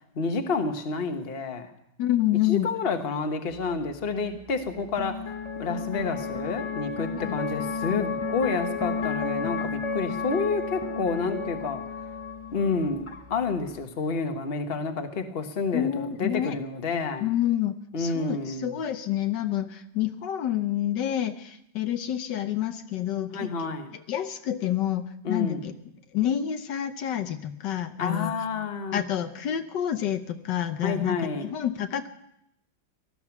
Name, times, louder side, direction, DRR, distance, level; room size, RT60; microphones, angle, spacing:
voice 1, 0.1-1.7 2.5-5.3 5.6-11.8 12.5-17.3 17.9-18.8 23.3-23.9 25.2-25.6 28.0-29.0 30.8-31.5, left 4 dB, 35° left, 6 dB, 1.3 m, -29 dB
voice 2, 2.0-2.7 7.1-7.4 15.7-16.6 17.2-23.7 24.1-25.7 26.1-28.3 28.9-32.1, left 11 dB, 75° left, 8 dB, 1.5 m, -28 dB
sound 1, 3.5-13.8, left 5 dB, 55° left, 0.3 m, -33 dB
18.5 x 13.0 x 5.9 m, 0.78 s
omnidirectional pair, 1.9 m